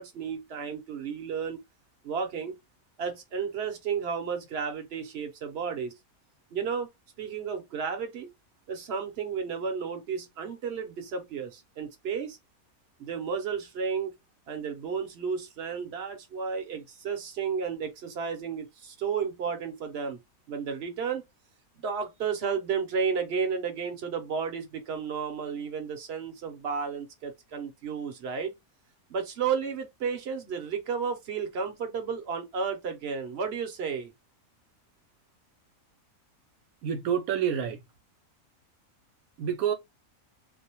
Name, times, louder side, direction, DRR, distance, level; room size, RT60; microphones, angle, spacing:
voice 1, 0.0-1.6 2.0-2.6 3.0-5.9 6.5-6.9 7.2-8.3 8.7-12.4 13.0-14.1 14.5-20.2 20.5-21.3 21.8-28.5 29.1-34.1, right 6 dB, 55° right, 0.8 m, -32 dB
voice 2, 36.8-37.8 39.4-39.7, right 8 dB, 75° right, 1.0 m, -27 dB
2.6 x 2.0 x 2.8 m
omnidirectional pair, 1.6 m